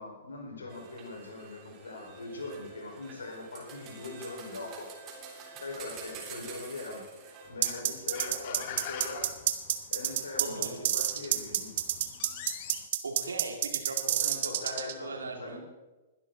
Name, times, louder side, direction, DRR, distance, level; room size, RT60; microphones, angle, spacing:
voice 1, 0.0-4.9 5.6-7.0 7.5-9.3 9.9-11.8 14.2-15.6, left 3 dB, 70° left, 1 dB, 4.7 m, -41 dB
sound 1, 0.7-7.5, right 5 dB, 30° right, 3.4 m, -47 dB
sound 2, 7.5-12.9, left 10 dB, 45° left, 1.2 m, -46 dB
sound 3, 7.6-14.9, right 12 dB, 50° right, 1.3 m, -28 dB
voice 2, 10.4-10.8 13.0-15.6, right 3 dB, 70° right, 4 dB, 2.5 m, -39 dB
21.0 x 12.0 x 4.0 m, 1.1 s
figure-of-eight pair, 110°, 0 cm